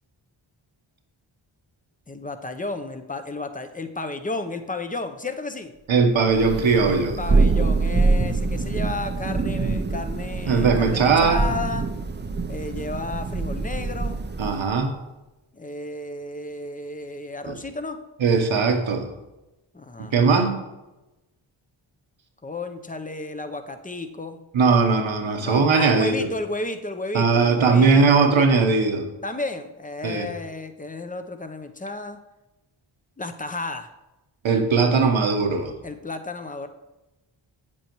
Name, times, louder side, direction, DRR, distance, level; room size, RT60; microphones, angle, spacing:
voice 1, 2.1-5.7 6.9-11.9 12.4-14.2 15.5-18.0 19.7-20.1 22.4-24.4 25.4-28.2 29.2-32.2 33.2-33.9 35.8-36.7, left 2 dB, 15° left, 8 dB, 0.8 m, -32 dB
voice 2, 5.9-7.2 10.5-11.4 14.4-14.9 17.5-17.6 18.2-19.1 20.0-20.5 24.5-26.3 27.1-29.0 30.0-30.3 34.4-35.7, right 4 dB, 65° right, 4 dB, 1.2 m, -19 dB
Thunder, 6.3-14.7, right 3 dB, 20° right, 0.6 m, -25 dB
8.1 x 7.6 x 3.1 m, 1.0 s
cardioid pair, 45°, 49 cm